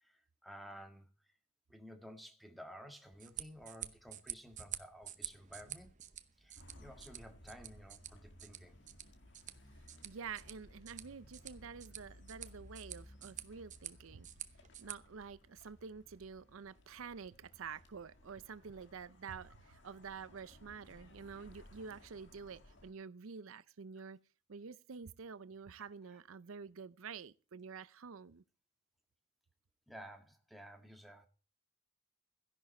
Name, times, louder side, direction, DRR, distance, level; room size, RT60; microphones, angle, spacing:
voice 1, 0.0-1.1 1.7-5.9 6.4-8.8 29.9-31.3, equal, ahead, 1.6 m, -53 dB
sound 1, 3.1-14.9, right 11 dB, 35° right, 0.8 m, -49 dB
sound 2, 6.6-22.9, left 1 dB, 55° left, 1.9 m, -59 dB
voice 2, 10.0-14.3 14.8-24.2 24.5-28.4, right 5 dB, 70° right, 0.6 m, -48 dB
14.5 x 11.0 x 4.3 m
head